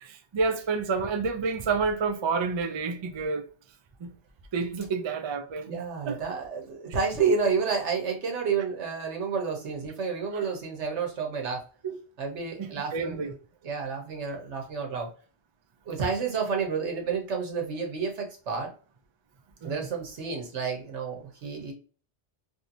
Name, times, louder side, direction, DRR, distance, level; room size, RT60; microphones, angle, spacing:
voice 1, 0.0-3.5 4.0-4.1 4.5-6.2 11.8-12.0 12.6-13.3 19.6-19.9, right 4 dB, 50° right, 0.3 m, -29 dB
voice 2, 5.7-11.6 12.2-13.2 13.6-15.1 15.9-18.7 19.6-21.7, right 5 dB, 85° right, 1.4 m, -30 dB
3.3 x 2.8 x 2.6 m
omnidirectional pair, 1.2 m